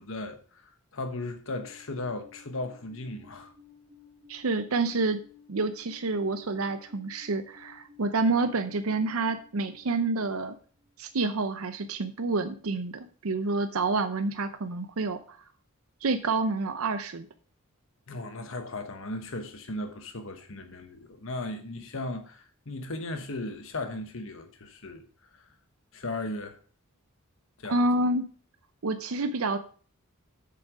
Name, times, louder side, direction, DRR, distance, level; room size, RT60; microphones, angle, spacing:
voice 1, 0.0-3.5 18.1-25.0 25.3-25.4 25.9-26.6 27.6-27.8, left 2 dB, 65° left, 1.1 m, -36 dB
Alarm, 1.5-10.4, left 6 dB, 55° right, 3.3 m, -55 dB
voice 2, 4.3-5.2 5.5-10.5 11.0-15.4 16.0-17.3 27.6-28.2 28.8-29.6, right 3 dB, 80° right, 0.7 m, -28 dB
7.7 x 7.4 x 4.9 m
head